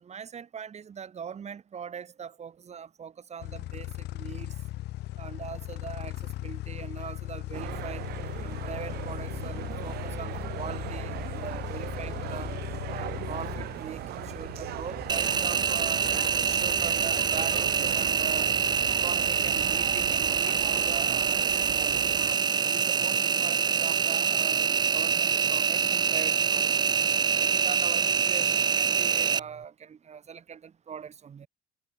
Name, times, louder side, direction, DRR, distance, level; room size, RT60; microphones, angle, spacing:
voice 1, 0.0-4.6 5.2-8.0 8.4-12.5 12.9-16.1 16.3-18.6 18.9-22.1 22.7-26.9 27.3-31.5, right 7 dB, 40° right, 5.7 m, -41 dB
sound 1, 3.4-20.4, left 16 dB, 80° left, 4.2 m, -39 dB
sound 2, 7.5-22.4, right 15 dB, 70° right, 0.8 m, -39 dB
Engine, 15.1-29.4, right 7 dB, 25° right, 0.4 m, -25 dB
cardioid pair, 110°, 17 cm